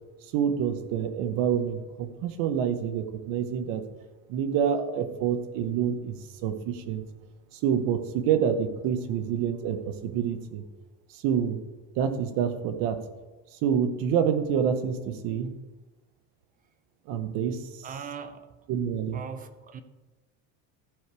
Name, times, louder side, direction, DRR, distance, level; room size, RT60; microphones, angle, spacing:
voice 1, 0.3-3.8 4.3-7.0 7.5-10.6 11.1-11.6 11.9-13.0 13.6-15.6 17.1-17.9 18.7-19.2, right 8 dB, 60° right, 1.0 m, -27 dB
voice 2, 17.8-18.5 19.1-19.8, right 6 dB, 20° right, 0.5 m, -39 dB
14.0 x 5.0 x 4.7 m
cardioid pair, 150°, 38 cm